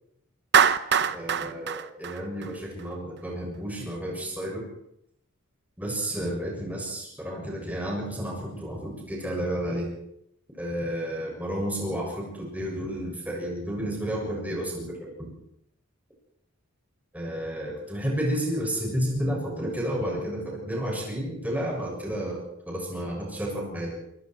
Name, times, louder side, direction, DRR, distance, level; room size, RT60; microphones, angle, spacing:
Clapping, 0.5-2.8, right 7 dB, 55° right, 0.8 m, -23 dB
voice 1, 1.1-4.6 5.8-9.9 10.5-15.3 17.1-24.0, equal, 10° right, -2 dB, 6.9 m, -31 dB
27.5 x 20.5 x 4.7 m, 0.73 s
head